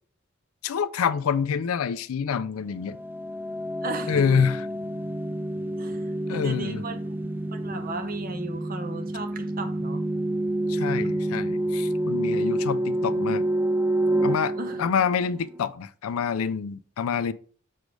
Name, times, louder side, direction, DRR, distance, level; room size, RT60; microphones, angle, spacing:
voice 1, 0.6-3.0 4.1-4.6 6.3-6.8 10.7-13.4 14.2-17.3, left 6 dB, 85° left, 0.4 m, -27 dB
sound 1, 2.9-15.6, right 1 dB, 10° right, 0.3 m, -28 dB
voice 2, 3.8-4.2 5.8-10.0 14.6-14.8, right 2 dB, 45° right, 1.0 m, -36 dB
6.3 x 3.2 x 5.0 m
head